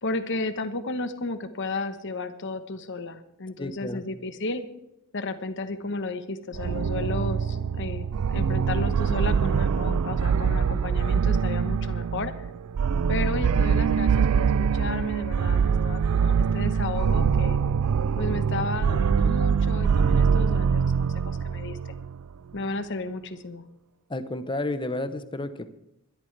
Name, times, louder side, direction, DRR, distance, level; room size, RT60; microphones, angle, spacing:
voice 1, 0.0-4.6 5.1-12.5 13.1-17.6 18.2-21.8 22.5-23.6, left 3 dB, 60° left, 10 dB, 1.1 m, -33 dB
voice 2, 3.6-4.0 24.1-25.7, left 2 dB, 25° left, 11 dB, 0.9 m, -31 dB
sound 1, 6.5-22.2, right 6 dB, 75° right, 0.4 m, -24 dB
21.5 x 12.5 x 3.3 m, 0.84 s
head